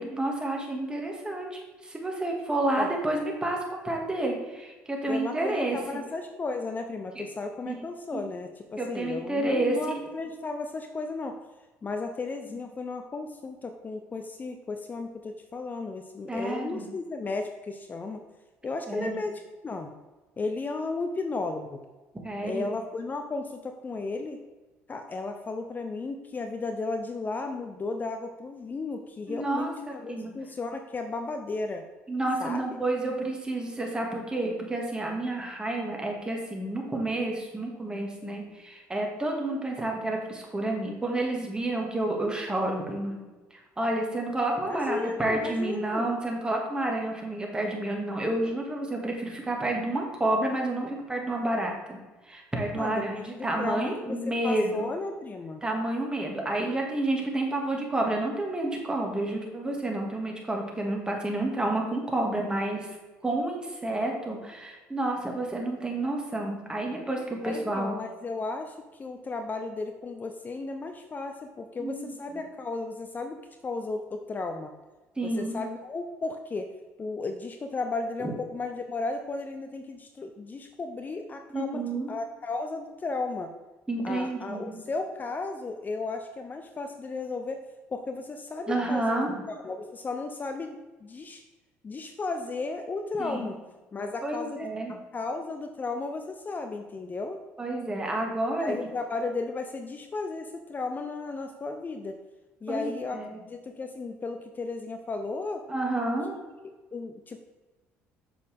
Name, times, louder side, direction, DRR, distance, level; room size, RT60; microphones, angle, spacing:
voice 1, 0.0-5.8 7.2-7.3 7.7-7.8 8.1-8.2 8.8-9.8 16.3-16.9 18.9-19.2 22.2-22.7 29.3-30.3 32.1-43.2 43.8-52.0 52.3-54.9 55.6-62.9 63.2-67.9 71.8-72.4 75.2-75.7 78.2-78.3 81.5-82.1 83.9-84.8 88.7-89.4 93.2-93.5 94.2-95.0 97.6-98.7 102.7-103.4 105.7-106.4, right 2 dB, 15° right, 0 dB, 2.1 m, -30 dB
voice 2, 5.1-11.4 11.8-18.3 18.6-19.9 20.4-21.8 22.4-24.4 24.9-31.8 32.4-32.7 44.6-46.1 52.7-55.6 67.4-73.4 73.6-74.7 75.2-76.7 77.0-83.5 84.0-87.6 87.9-90.8 91.0-91.4 91.8-93.6 93.9-97.4 98.6-102.2 102.6-103.2 103.5-105.6 106.9-107.4, left 3 dB, 30° left, 6 dB, 0.7 m, -34 dB
7.5 x 6.5 x 3.5 m, 1.2 s
supercardioid pair, 70°, 6 cm